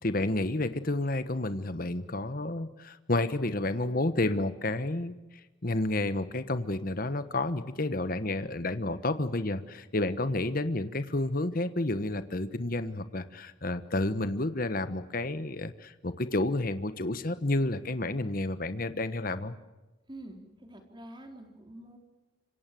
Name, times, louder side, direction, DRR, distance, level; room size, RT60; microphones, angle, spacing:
voice 1, 0.0-5.2 5.6-19.5, left 2 dB, 45° left, 12 dB, 1.3 m, -30 dB
voice 2, 20.1-22.0, right 1 dB, 25° right, 4 dB, 4.1 m, -47 dB
26.5 x 25.0 x 7.7 m, 1.1 s
head